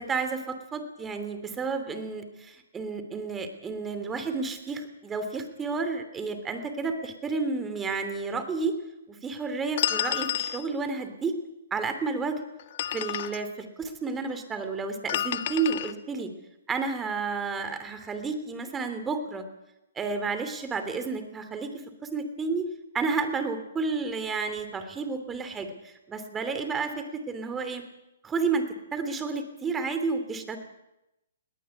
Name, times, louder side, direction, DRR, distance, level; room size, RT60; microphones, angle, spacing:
voice 1, 0.0-8.7 9.1-11.3 11.7-12.4 12.9-16.3 16.7-19.4 19.9-21.7 22.0-22.7 22.9-27.8 28.2-28.6 28.9-30.6, right 4 dB, 15° right, 9 dB, 3.0 m, -31 dB
sound 1, 9.8-10.6 12.6-13.4 15.1-15.9, left 11 dB, 50° left, 1.5 m, -29 dB
20.5 x 18.0 x 9.9 m, 0.92 s
hypercardioid pair, 140°, 0 cm